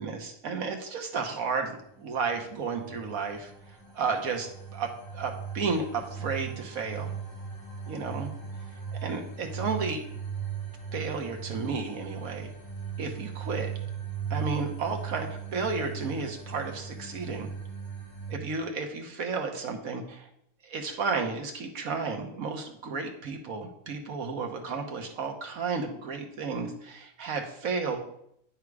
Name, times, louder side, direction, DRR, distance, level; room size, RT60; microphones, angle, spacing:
voice 1, 0.0-3.5 3.9-7.1 7.9-8.3 9.0-10.0 10.9-12.5 13.0-13.7 14.3-17.5 18.3-20.3 20.6-28.0, right 4 dB, 75° right, 3 dB, 1.5 m, -32 dB
sound 1, 2.0-18.3, right 7 dB, 20° left, 1.2 m, -38 dB
9.6 x 3.7 x 4.7 m, 0.73 s
omnidirectional pair, 1.5 m